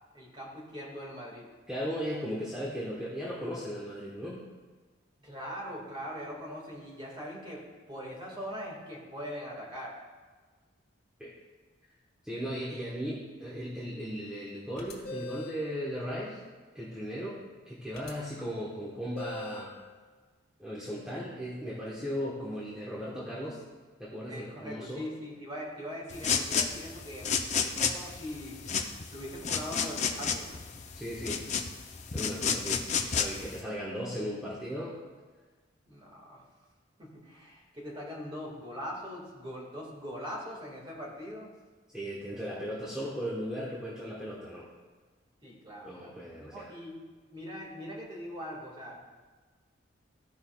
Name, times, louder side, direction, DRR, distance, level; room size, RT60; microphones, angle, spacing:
voice 1, 0.1-1.5 5.2-10.0 24.3-28.6 29.1-30.5 35.8-36.4 37.0-41.5 45.4-46.1 46.4-49.2, equal, 25° right, -3 dB, 1.8 m, -41 dB
voice 2, 1.7-4.4 11.2-11.3 12.2-16.4 16.7-17.4 17.6-19.8 20.6-23.6 24.0-25.0 30.9-31.4 32.1-32.8 33.1-35.0 41.9-44.7 45.8-46.7, equal, 5° right, -7 dB, 1.1 m, -37 dB
sound 1, 14.8-15.7 17.9-18.1 19.2-19.8, left 2 dB, 50° left, 2.0 m, -41 dB
sound 2, 26.1-33.6, left 6 dB, 35° left, 0.5 m, -31 dB
15.0 x 5.6 x 2.3 m, 1.4 s
head